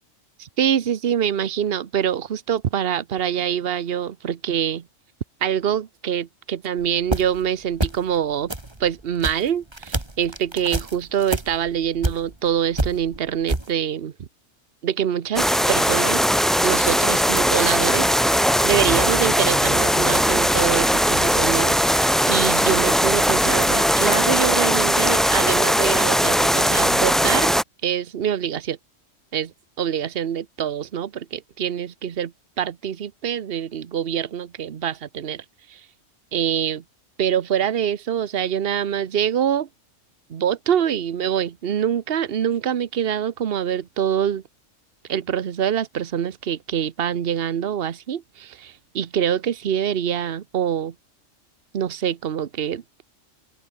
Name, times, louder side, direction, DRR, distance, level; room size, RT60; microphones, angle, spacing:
voice 1, 0.4-4.8 5.4-8.5 8.8-14.3 14.8-16.2 16.6-28.8 29.3-29.5 29.8-32.3 32.6-35.4 35.7-35.8 36.3-36.8 37.2-39.7 40.3-44.4 45.1-50.9 51.7-52.8, right 9 dB, 50° right, 1.1 m, -25 dB
sound 1, 6.8-7.5 7.7-8.2 8.5-12.5 12.7-13.7, right 1 dB, 20° right, 2.5 m, -27 dB
sound 2, 15.4-27.6, equal, ahead, 0.9 m, -19 dB
open air
omnidirectional pair, 1.3 m